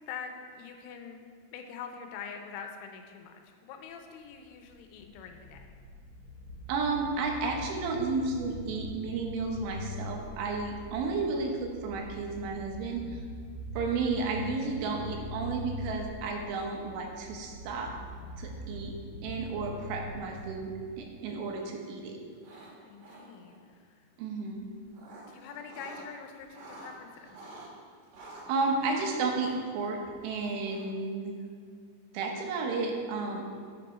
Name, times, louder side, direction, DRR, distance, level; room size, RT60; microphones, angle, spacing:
voice 1, 0.1-1.2 1.5-5.7 22.8-24.0 25.2-27.3, left 6 dB, 85° left, 5 dB, 3.1 m, -44 dB
sound 1, 4.2-20.5, left 1 dB, 45° left, 1.9 m, -43 dB
voice 2, 6.7-13.2 13.8-17.9 18.4-18.9 19.2-22.2 24.2-24.7 28.5-31.3 32.1-33.5, right 4 dB, 80° right, 1 dB, 3.4 m, -32 dB
sound 2, 22.3-22.7 23.0-23.6 24.6-26.1 26.4-27.7 28.1-31.0, right 2 dB, 60° right, 2.6 m, -49 dB
8.0 x 6.1 x 4.9 m, 2.1 s
omnidirectional pair, 5.5 m